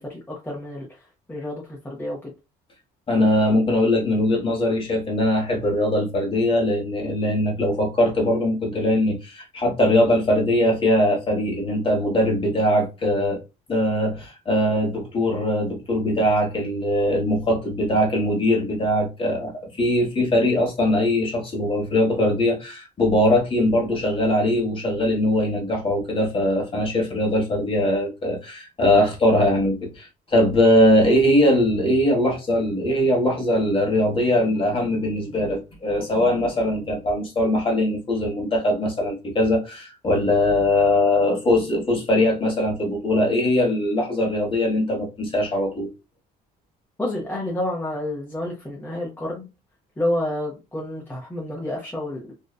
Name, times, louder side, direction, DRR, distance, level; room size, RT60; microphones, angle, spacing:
voice 1, 0.0-2.3 47.0-49.5 50.0-52.3, left 1 dB, 10° left, 0.8 m, -29 dB
voice 2, 3.1-13.4 13.7-45.9, left 1 dB, 30° left, 1.2 m, -21 dB
2.7 x 2.3 x 2.3 m
cardioid pair, 110°, 17 cm